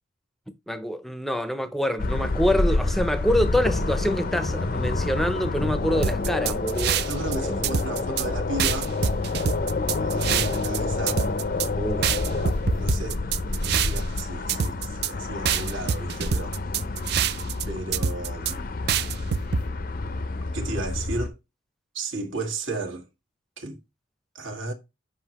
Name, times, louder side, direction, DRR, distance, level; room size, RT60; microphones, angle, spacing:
voice 1, 0.7-7.1 7.4-7.6 11.8-12.5, equal, ahead, 0.6 m, -26 dB
sound 1, 2.0-21.3, left 3 dB, 45° left, 0.5 m, -28 dB
sound 2, 6.0-7.4 7.6-8.3 8.6-10.8 11.1-11.7 12.0-14.2 14.5-15.1 15.5-17.6 17.9-18.5 18.9-19.6, right 8 dB, 50° right, 0.4 m, -25 dB
voice 2, 7.0-8.9 9.9-11.2 12.2-12.3 12.7-16.6 17.7-18.6 20.5-21.4 21.9-23.1 23.6-23.8 24.3-24.7, right 2 dB, 70° right, 1.5 m, -34 dB
7.8 x 5.3 x 2.9 m
head